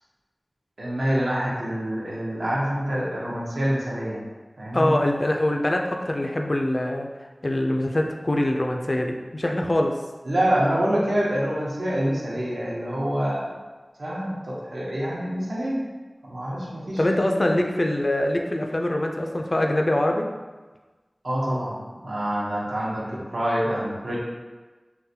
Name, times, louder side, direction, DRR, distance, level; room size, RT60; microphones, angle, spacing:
voice 1, 0.8-4.2 4.6-4.9 10.2-13.5 14.0-15.8 16.2-17.5 21.2-21.8 22.0-24.2, equal, 85° right, -6 dB, 0.8 m, -26 dB
voice 2, 4.7-7.1 7.4-9.9 17.0-20.3, left 1 dB, 50° left, 2 dB, 0.3 m, -23 dB
3.8 x 2.2 x 2.7 m, 1.3 s
wide cardioid pair, 50°, 0 cm